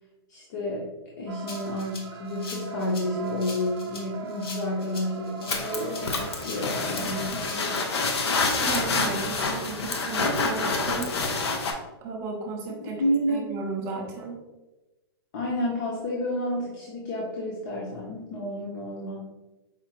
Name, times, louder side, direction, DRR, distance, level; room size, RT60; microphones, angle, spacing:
voice 1, 0.3-7.8 12.8-13.5 15.3-19.2, left 1 dB, 45° left, -3 dB, 0.7 m, -30 dB
sound 1, 1.3-8.5, right 5 dB, 75° right, 0.6 m, -41 dB
Rattle (instrument), 1.5-9.5, left 3 dB, 70° left, 1.0 m, -42 dB
sound 2, 5.5-11.7, left 3 dB, 90° left, 0.7 m, -27 dB
voice 2, 8.6-11.1 12.0-13.0 13.3-14.4, right 4 dB, 20° right, 0 dB, 0.4 m, -34 dB
5.0 x 2.3 x 2.8 m, 1.1 s
hypercardioid pair, 165°, 13 cm